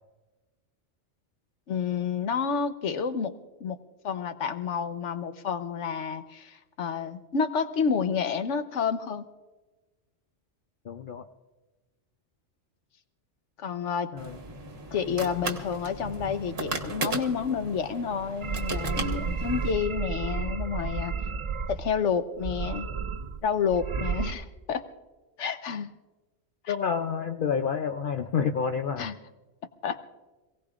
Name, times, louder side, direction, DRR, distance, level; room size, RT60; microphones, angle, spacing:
voice 1, 1.7-3.3 3.6-3.8 4.0-9.3 13.6-14.1 14.9-21.1 21.7-22.9 23.4-24.8 25.4-25.9 26.6-26.7 29.0-29.2 29.8-30.0, left 6 dB, 85° left, 9 dB, 1.2 m, -29 dB
voice 2, 10.9-11.2 14.1-14.4 26.7-29.1, left 6 dB, 55° left, 6 dB, 0.7 m, -29 dB
sound 1, 14.2-19.7, right 3 dB, 60° right, 1.6 m, -36 dB
sound 2, 18.4-21.9 22.4-23.4 23.7-24.3, right 5 dB, 40° right, 0.4 m, -32 dB
26.0 x 17.5 x 2.5 m, 1.2 s
omnidirectional pair, 1.2 m